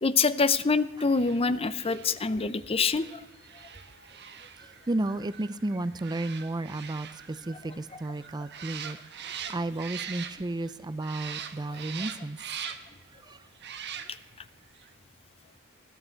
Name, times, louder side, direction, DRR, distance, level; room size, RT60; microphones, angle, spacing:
voice 1, 0.0-3.2 12.6-12.7, left 4 dB, 25° left, 15 dB, 0.6 m, -25 dB
sound 1, 0.9-10.7 11.0-13.0 13.5-14.4 14.7-14.9, right 8 dB, 55° right, 1.3 m, -43 dB
voice 2, 4.6-12.7 13.1-13.5, right 2 dB, 20° right, 14 dB, 0.5 m, -33 dB
21.0 x 14.5 x 4.5 m, 1.1 s
head